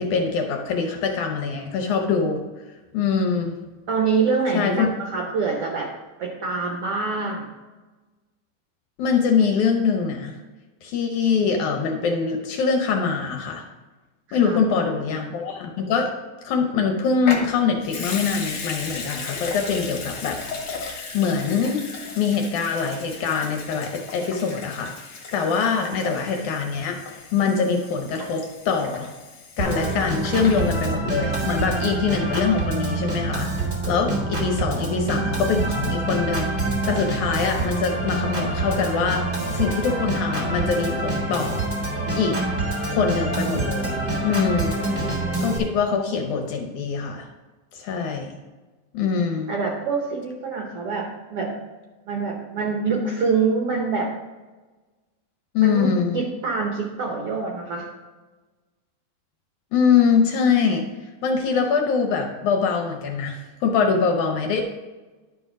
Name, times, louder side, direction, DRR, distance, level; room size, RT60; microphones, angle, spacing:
voice 1, 0.0-2.4 2.9-3.6 4.5-4.9 9.0-10.4 10.8-13.7 14.3-16.1 16.4-21.8 22.2-27.0 27.3-29.1 29.6-41.7 42.1-42.4 42.9-44.8 45.4-47.3 47.7-48.3 48.9-49.5 55.5-56.2 59.7-60.9 61.2-64.6, left 5 dB, 75° left, 3 dB, 1.9 m, -23 dB
voice 2, 3.9-5.9 6.2-7.5 14.3-14.6 49.5-51.6 52.1-54.1 55.6-57.9, right 4 dB, 75° right, 0 dB, 1.3 m, -25 dB
Water tap faucet / Sink (filling or washing) / Liquid, 17.2-31.9 32.1-32.2, left 4 dB, 55° left, 1.7 m, -36 dB
Organ, 29.6-45.6, right 2 dB, 45° right, 0.6 m, -26 dB
11.0 x 4.9 x 5.0 m, 1.2 s
omnidirectional pair, 4.1 m